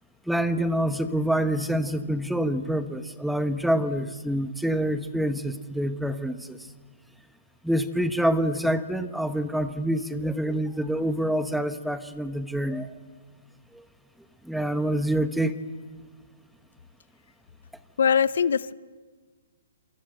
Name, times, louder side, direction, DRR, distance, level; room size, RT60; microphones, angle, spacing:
voice 1, 0.3-6.6 7.6-12.9 14.4-15.6, right 1 dB, ahead, 10 dB, 1.1 m, -26 dB
voice 2, 18.0-18.7, left 7 dB, 70° left, 18 dB, 0.8 m, -21 dB
28.0 x 23.0 x 7.9 m, 1.5 s
hypercardioid pair, 145°, 0 cm